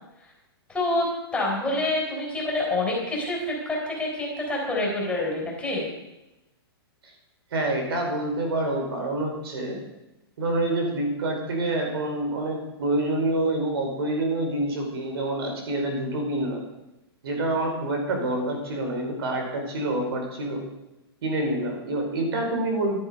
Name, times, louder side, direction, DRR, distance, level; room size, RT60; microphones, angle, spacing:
voice 1, 0.7-5.9, left 2 dB, 10° left, -2 dB, 4.0 m, -27 dB
voice 2, 7.5-9.8 10.4-16.6 17.2-20.6 21.2-23.0, right 2 dB, 70° right, 2 dB, 5.1 m, -27 dB
14.5 x 11.0 x 5.4 m, 0.96 s
hypercardioid pair, 145°, 13 cm